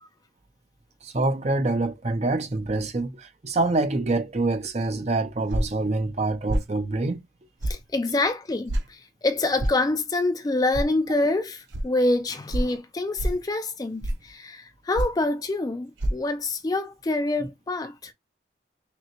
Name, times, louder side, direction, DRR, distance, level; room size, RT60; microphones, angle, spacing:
voice 1, 1.0-7.2, right 2 dB, 35° right, 0.6 m, -26 dB
dh woosh collection, 5.5-5.8 6.5-6.7 7.6-7.8 8.7-8.9 9.6-9.8 10.7-10.9 11.7-11.8 12.5-12.7 13.2-13.4 14.0-14.3 15.0-15.2 16.0-16.1, right 1 dB, 85° right, 0.8 m, -26 dB
voice 2, 7.6-18.1, left 2 dB, 20° left, 0.3 m, -26 dB
5.8 x 2.1 x 2.9 m
head